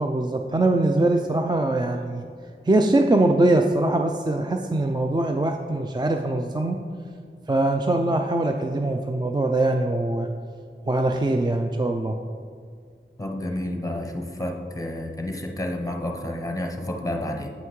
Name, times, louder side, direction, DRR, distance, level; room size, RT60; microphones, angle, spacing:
voice 1, 0.0-2.2 2.6-6.8 7.5-10.3 10.9-12.2, right 2 dB, 20° right, 4 dB, 0.4 m, -22 dB
voice 2, 13.2-17.5, left 1 dB, 15° left, 2 dB, 0.8 m, -30 dB
8.0 x 5.6 x 3.1 m, 2.2 s
wide cardioid pair, 45°, 20 cm